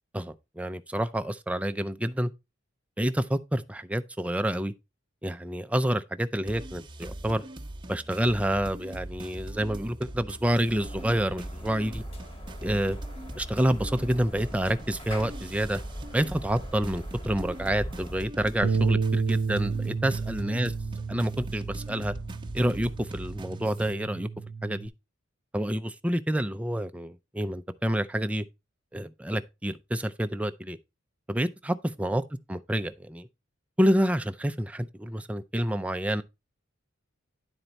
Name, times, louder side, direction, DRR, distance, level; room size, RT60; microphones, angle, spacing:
voice 1, 0.1-2.3 3.0-4.7 5.2-7.4 7.9-12.0 12.6-13.0 13.4-15.8 16.1-20.7 21.1-22.1 22.5-24.3 24.6-24.9 25.5-28.4 28.9-30.8 31.3-32.2 32.5-33.3 33.8-36.2, right 1 dB, 5° right, 0.4 m, -28 dB
sound 1, 6.5-23.9, right 1 dB, 25° right, 0.8 m, -41 dB
sound 2, 10.7-18.1, equal, 30° left, 1.5 m, -41 dB
Bass guitar, 18.6-24.9, right 5 dB, 85° right, 0.6 m, -31 dB
9.9 x 4.5 x 4.0 m
head